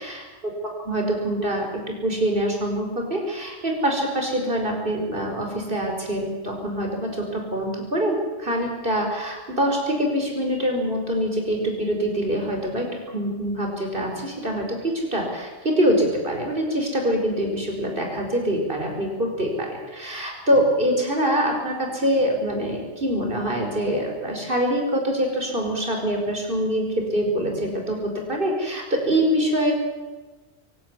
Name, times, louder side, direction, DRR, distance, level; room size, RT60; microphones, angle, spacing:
voice 1, 0.0-12.9 13.1-29.7, equal, 50° right, 1 dB, 5.0 m, -24 dB
25.0 x 12.0 x 9.7 m, 1.3 s
omnidirectional pair, 1.2 m